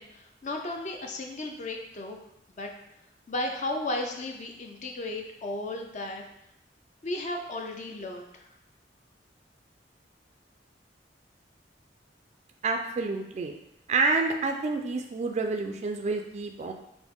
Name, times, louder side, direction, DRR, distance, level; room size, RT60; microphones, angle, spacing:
voice 1, 0.0-2.2 2.6-2.7 3.3-6.2 7.0-8.5, left 2 dB, 40° left, 2 dB, 0.5 m, -34 dB
voice 2, 12.6-13.5 13.9-16.7, right 3 dB, 40° right, 4 dB, 0.3 m, -28 dB
6.0 x 2.1 x 3.5 m, 0.82 s
head